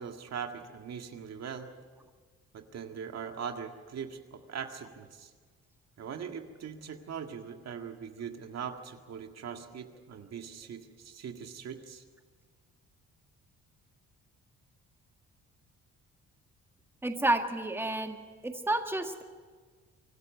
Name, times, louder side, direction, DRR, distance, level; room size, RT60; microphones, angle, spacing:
voice 1, 0.0-1.7 2.5-5.3 6.0-12.0, right 7 dB, 60° right, 5 dB, 1.9 m, -41 dB
voice 2, 17.0-18.1 18.4-19.2, right 1 dB, 10° right, 5 dB, 1.6 m, -30 dB
25.0 x 12.5 x 9.4 m, 1.5 s
cardioid pair, 90°, 30 cm